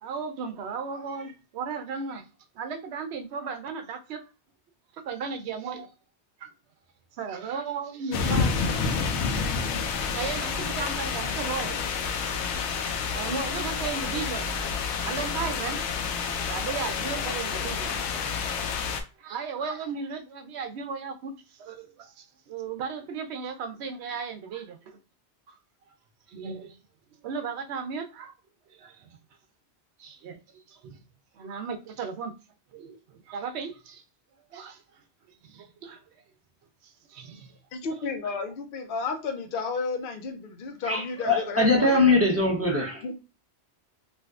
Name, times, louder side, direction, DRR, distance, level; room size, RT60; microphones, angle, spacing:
voice 1, 0.0-2.2 2.5-4.3 4.9-5.9 6.4-6.5 7.2-8.5 10.1-11.8 12.6-14.5 15.0-15.8 16.5-25.0 26.3-26.8 27.2-28.3 28.7-29.1 30.0-31.0 31.3-32.3 32.7-34.0 34.5-35.0 35.4-36.0 36.8-37.6, right 5 dB, 70° right, 0.8 m, -36 dB
sound 1, 8.1-19.0, left 5 dB, 85° left, 0.9 m, -29 dB
voice 2, 37.7-42.0 43.0-43.1, left 4 dB, 55° left, 0.7 m, -32 dB
voice 3, 40.9-43.0, left 2 dB, 15° right, 0.7 m, -22 dB
3.3 x 2.5 x 2.4 m
omnidirectional pair, 1.2 m